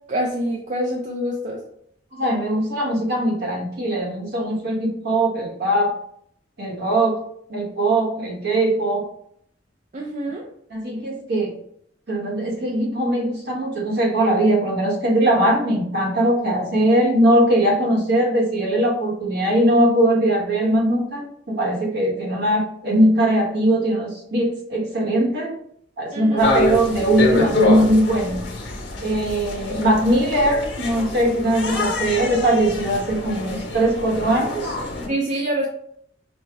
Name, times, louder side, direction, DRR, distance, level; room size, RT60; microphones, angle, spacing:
voice 1, 0.1-1.6 9.9-10.4 26.1-26.4 35.1-35.7, right 1 dB, 40° right, -1 dB, 0.5 m, -25 dB
voice 2, 2.1-5.9 6.6-7.2 7.5-9.1 10.7-11.5 12.1-25.5 26.0-28.4 29.0-34.7, right 1 dB, 60° right, -1 dB, 1.1 m, -20 dB
sound 1, 26.4-35.1, left 2 dB, 80° left, 1.0 m, -25 dB
5.4 x 2.1 x 3.3 m, 0.69 s
head